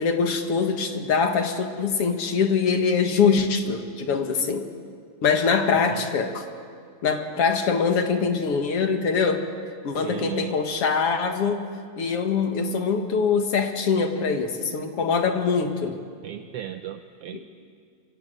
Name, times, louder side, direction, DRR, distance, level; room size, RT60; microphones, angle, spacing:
voice 1, 0.0-4.6 5.2-6.4 7.0-9.4 9.8-11.6 12.0-16.0, left 5 dB, 55° left, 5 dB, 2.4 m, -23 dB
voice 2, 10.0-10.6 16.2-17.5, right 11 dB, 70° right, 8 dB, 1.5 m, -35 dB
27.5 x 24.0 x 7.9 m, 2.2 s
omnidirectional pair, 3.4 m